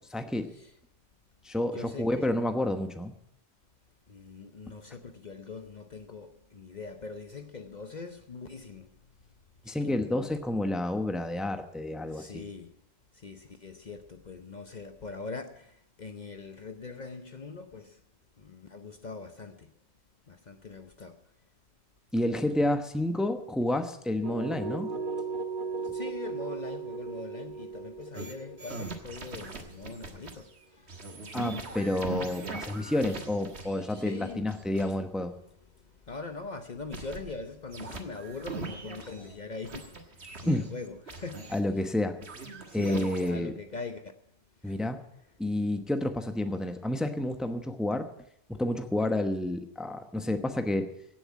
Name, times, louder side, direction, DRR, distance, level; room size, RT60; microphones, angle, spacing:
voice 1, 0.1-0.5 1.4-3.1 9.7-12.4 22.1-24.9 31.3-35.3 40.5-40.7 41.5-42.2 42.7-43.5 44.6-45.0 45.4-48.1 48.5-50.9, left 1 dB, ahead, 0.9 m, -29 dB
voice 2, 1.7-2.3 4.1-8.9 9.8-10.1 12.1-12.7 13.2-15.7 16.0-17.9 18.4-19.7 20.3-21.1 25.9-30.5 31.7-32.2 34.0-34.5 36.1-39.9 40.4-41.9 42.7-44.0, left 4 dB, 45° left, 0.9 m, -42 dB
sound 1, 24.2-30.1, right 4 dB, 50° right, 1.6 m, -37 dB
sound 2, 28.1-28.3 28.6-30.4 30.9-34.9 36.9-37.4 37.7-39.4 39.7-41.6 42.2-43.3, right 3 dB, 75° right, 1.9 m, -41 dB
17.0 x 7.3 x 8.3 m
omnidirectional pair, 1.1 m